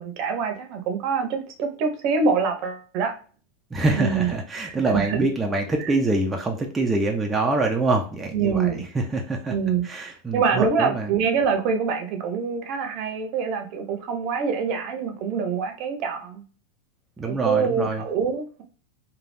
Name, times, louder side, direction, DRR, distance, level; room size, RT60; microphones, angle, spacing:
voice 1, 0.0-3.1 4.0-4.3 4.6-5.2 5.8-5.9 8.3-8.8 9.5-9.9 10.3-16.4 17.2-18.6, right 5 dB, 50° right, 5 dB, 0.8 m, -25 dB
voice 2, 3.7-9.5 9.8-11.1 17.2-18.1, right 2 dB, 15° right, 1 dB, 0.5 m, -25 dB
3.3 x 2.3 x 2.5 m, 0.39 s
supercardioid pair, 125°, 0 cm